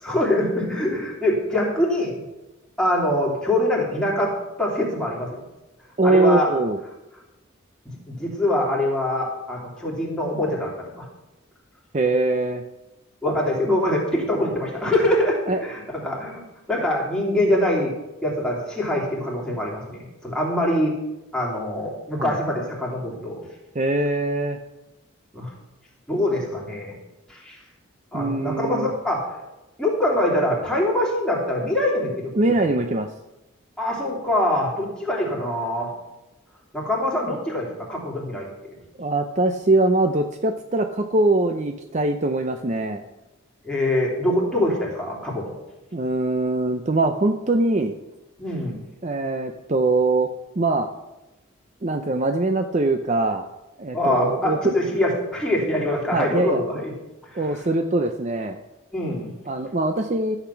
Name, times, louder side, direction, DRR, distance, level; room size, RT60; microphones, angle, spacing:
voice 1, 0.0-2.2 2.8-4.3 4.6-5.4 6.0-6.5 7.8-11.1 13.2-16.4 16.7-17.9 18.2-20.9 21.3-23.4 25.3-25.5 26.1-26.9 27.3-27.6 28.1-29.3 29.8-32.7 33.8-35.9 36.7-38.8 43.6-45.5 48.4-48.8 53.9-56.9 57.2-57.6 58.9-59.3, left 1 dB, 5° left, -4 dB, 3.1 m, -24 dB
voice 2, 6.0-6.8 11.9-12.6 15.5-15.6 22.2-22.3 23.7-24.6 28.1-28.9 32.3-33.1 39.0-43.0 45.9-48.0 49.0-50.3 50.6-50.9 51.8-53.5 53.8-54.7 56.1-56.6 57.4-58.6 59.5-60.4, right 2 dB, 35° right, 6 dB, 0.6 m, -22 dB
13.5 x 8.1 x 5.8 m, 1.0 s
head